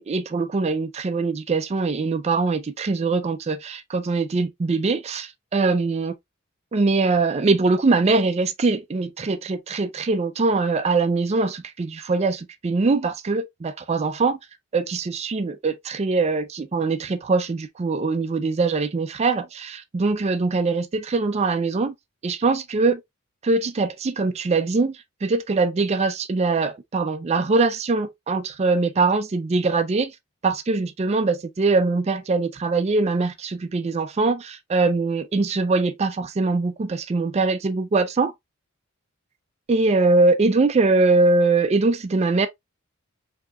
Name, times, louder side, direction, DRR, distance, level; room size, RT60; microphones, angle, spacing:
voice 1, 0.0-6.2 6.7-14.4 14.7-21.9 22.2-23.0 23.4-30.1 30.4-38.3 39.7-42.5, right 3 dB, 30° right, 0.4 m, -22 dB
4.6 x 2.8 x 2.3 m
head